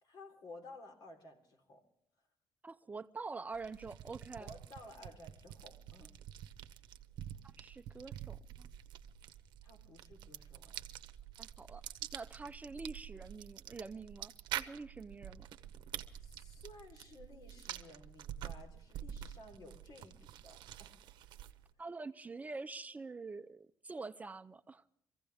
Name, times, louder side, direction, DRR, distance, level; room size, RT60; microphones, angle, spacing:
voice 1, 0.0-1.9 4.4-6.2 9.6-10.8 16.2-21.0, left 2 dB, 65° left, 3.8 m, -55 dB
voice 2, 2.6-4.5 7.6-8.7 11.4-11.8 12.1-15.5 21.8-24.8, right 4 dB, 20° right, 0.5 m, -46 dB
sound 1, 3.5-21.7, right 11 dB, 90° right, 0.9 m, -48 dB
24.5 x 15.5 x 3.5 m
cardioid pair, 120°, 8 cm